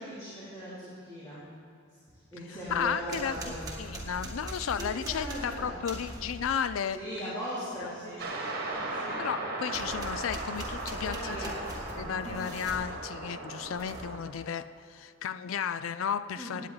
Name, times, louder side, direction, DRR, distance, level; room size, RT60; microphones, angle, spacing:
voice 1, 0.0-1.4 2.3-3.6 4.8-5.9 6.9-8.4 8.8-9.2 9.9-10.0 11.0-12.4 16.4-16.7, equal, 20° left, -11 dB, 3.0 m, -39 dB
voice 2, 2.7-7.3 7.8-7.9 9.2-11.5 12.0-16.7, left 7 dB, 80° left, 13 dB, 0.4 m, -34 dB
sound 1, 2.7-6.6 9.7-12.9 13.6-14.2, right 1 dB, 20° right, 1.9 m, -42 dB
sound 2, 8.2-14.2, right 2 dB, 50° right, 1.6 m, -37 dB
17.5 x 9.2 x 4.0 m, 2.4 s
head